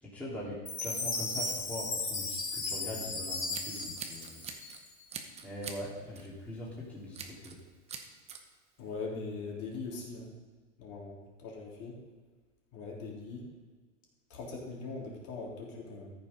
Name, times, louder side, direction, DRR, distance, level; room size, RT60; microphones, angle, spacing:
voice 1, 0.0-4.4 5.4-7.5, left 1 dB, 5° left, -8 dB, 2.7 m, -42 dB
Chime, 0.7-5.0, left 3 dB, 20° left, 3.3 m, -36 dB
Scissors, 3.2-4.8 5.1-5.8 6.1-6.4 7.1-7.6 7.9-8.4, right 6 dB, 15° right, 0.9 m, -43 dB
voice 2, 8.8-10.3 10.8-11.2 11.4-12.0 12.7-13.4 14.3-16.1, left 4 dB, 40° left, -3 dB, 3.5 m, -41 dB
14.0 x 6.8 x 5.4 m, 1.4 s
supercardioid pair, 150°, 39 cm